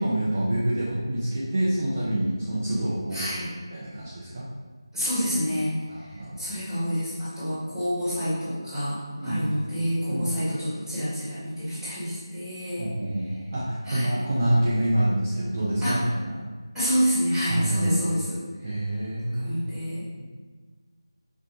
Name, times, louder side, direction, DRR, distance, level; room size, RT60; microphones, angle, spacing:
voice 1, 0.0-3.3 3.7-4.5 5.9-6.5 9.2-9.5 10.1-10.3 12.8-16.4 17.5-18.0 18.6-19.6, right 1 dB, 35° right, -8 dB, 0.6 m, -27 dB
voice 2, 3.1-3.5 4.9-5.7 6.1-12.9 13.8-14.1 15.8-16.0 16.7-18.4 19.3-20.0, equal, ahead, -19 dB, 1.5 m, -28 dB
5.6 x 2.4 x 2.8 m, 1.4 s
figure-of-eight pair, 165°, 3 cm